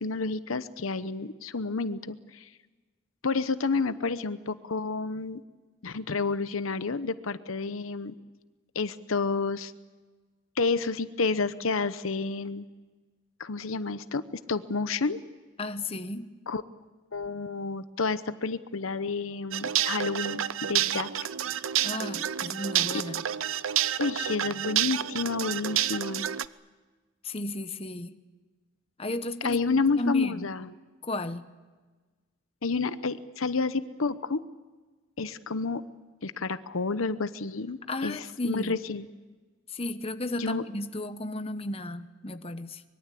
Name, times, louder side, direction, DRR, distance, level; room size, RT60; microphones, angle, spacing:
voice 1, 0.0-2.5 3.2-5.4 5.8-8.1 8.7-9.7 10.6-12.6 13.4-14.2 14.5-15.2 16.5-16.6 17.1-21.1 22.9-23.0 24.0-26.3 29.4-30.7 32.6-34.4 35.2-35.8 36.2-39.1 40.4-40.6, left 4 dB, 85° left, 13 dB, 1.0 m, -30 dB
voice 2, 15.6-16.3 21.8-23.2 27.2-28.2 29.0-29.6 30.0-30.5 31.0-31.5 37.9-38.8 39.7-42.8, left 2 dB, 30° left, 10 dB, 1.0 m, -34 dB
sound 1, 19.5-26.5, right 11 dB, 80° right, 0.7 m, -29 dB
24.5 x 22.0 x 8.5 m, 1.3 s
head